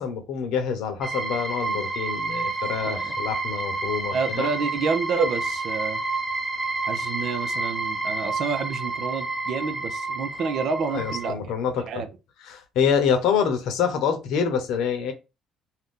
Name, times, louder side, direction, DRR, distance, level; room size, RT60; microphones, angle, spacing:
voice 1, 0.0-4.5 10.9-12.0 12.4-15.1, left 7 dB, 80° left, 0.8 m, -26 dB
sound 1, 1.0-11.3, right 3 dB, 5° left, 0.6 m, -29 dB
voice 2, 4.1-6.0 6.8-11.5 11.9-12.1, right 5 dB, 65° right, 0.5 m, -28 dB
2.6 x 2.2 x 3.6 m
cardioid pair, 95°, 0 cm